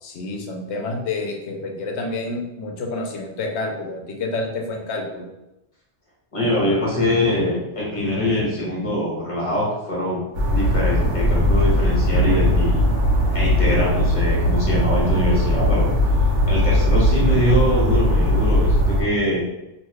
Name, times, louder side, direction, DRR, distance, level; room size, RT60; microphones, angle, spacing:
voice 1, 0.0-5.3, left 2 dB, 70° left, 2 dB, 0.9 m, -29 dB
voice 2, 6.3-10.2 10.5-12.9 13.3-15.9 16.5-19.4, left 1 dB, 30° left, -5 dB, 1.0 m, -23 dB
sound 1, 10.3-19.0, equal, 85° right, 1.1 m, -19 dB
2.7 x 2.2 x 3.2 m, 0.94 s
omnidirectional pair, 1.2 m